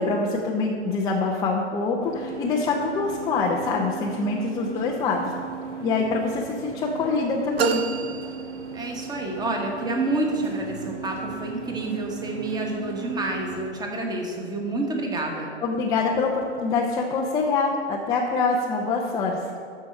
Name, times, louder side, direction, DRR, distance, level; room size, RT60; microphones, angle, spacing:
voice 1, 0.0-5.3 5.8-7.8 15.6-19.4, left 4 dB, 10° left, -2 dB, 0.5 m, -25 dB
sound 1, 2.0-13.7, right 5 dB, 90° right, 1.4 m, -37 dB
sound 2, 7.6-9.2, right 6 dB, 60° right, 0.9 m, -29 dB
voice 2, 8.7-15.5, right 2 dB, 10° right, 1 dB, 1.4 m, -28 dB
13.0 x 4.6 x 6.6 m, 2.4 s
figure-of-eight pair, 120°, 35 cm